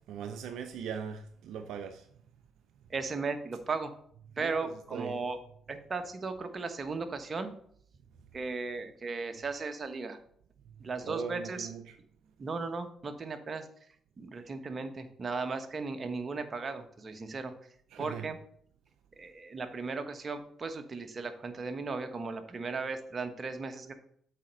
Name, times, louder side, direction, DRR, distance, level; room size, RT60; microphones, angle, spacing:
voice 1, 0.1-2.1 4.4-5.2 11.0-12.0 17.9-18.3, right 7 dB, 75° right, 0.5 m, -40 dB
voice 2, 2.9-3.9 4.4-5.4 5.7-7.5 8.3-10.2 10.8-11.7 12.4-13.7 14.2-17.5 18.0-18.4 19.2-23.9, right 4 dB, 40° right, 1.1 m, -36 dB
7.4 x 4.2 x 5.2 m
supercardioid pair, 65°, 0 cm